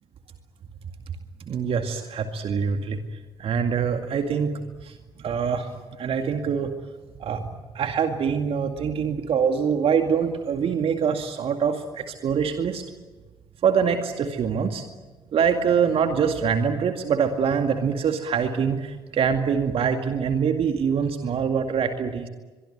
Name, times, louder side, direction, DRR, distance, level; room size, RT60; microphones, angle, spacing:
voice 1, 1.4-3.0 3.4-4.5 4.8-5.7 6.0-6.7 7.2-7.5 7.7-12.8 13.6-14.9 15.3-22.3, right 6 dB, 45° right, 6 dB, 2.2 m, -24 dB
24.0 x 23.5 x 9.3 m, 1.3 s
figure-of-eight pair, 45°, 13 cm